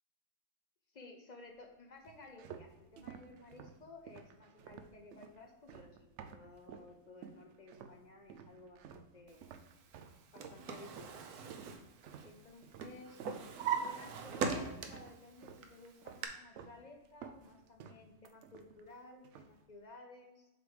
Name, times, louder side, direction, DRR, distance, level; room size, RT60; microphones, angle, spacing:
voice 1, 0.9-9.4 10.3-11.2 12.2-13.2 13.8-20.5, left 2 dB, 50° left, 2 dB, 0.5 m, -55 dB
sound 1, 2.0-6.9 7.2-8.0 8.3-14.6 14.9-15.7 16.0-16.8 17.0-18.9 19.2-19.6, right 7 dB, 90° right, 0.6 m, -53 dB
Drawer open or close, 10.1-12.5 12.8-15.1 15.6-16.3, right 6 dB, 70° right, 1.1 m, -39 dB
7.5 x 3.4 x 4.8 m, 1.0 s
omnidirectional pair, 1.8 m